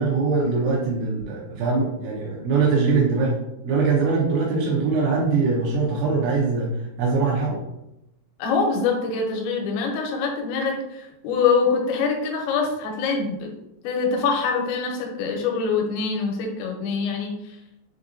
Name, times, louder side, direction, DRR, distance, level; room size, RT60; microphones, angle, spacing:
voice 1, 0.0-7.6, right 4 dB, 85° right, -3 dB, 3.0 m, -22 dB
voice 2, 8.4-13.5 13.8-17.3, left 5 dB, 80° left, 1 dB, 2.9 m, -24 dB
7.1 x 2.6 x 2.5 m, 0.86 s
omnidirectional pair, 5.5 m